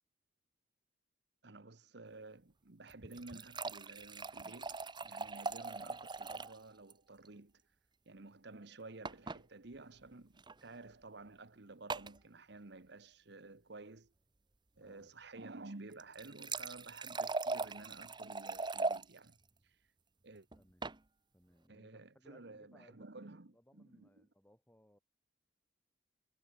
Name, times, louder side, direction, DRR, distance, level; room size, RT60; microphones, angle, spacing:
voice 1, 1.4-7.6 8.0-14.1 14.8-19.4 19.6-19.8 20.2-20.5 21.7-24.2, right 2 dB, 65° right, 1.3 m, -53 dB
sound 1, 2.9-6.6 6.9-7.0 7.2-7.3 9.0-9.4 10.4-10.5 11.9-12.2 15.9-19.0 20.5-21.0, right 3 dB, 25° right, 1.1 m, -40 dB
voice 2, 14.8-15.1 20.3-20.9 21.3-25.0, equal, 10° left, 8.0 m, -67 dB
head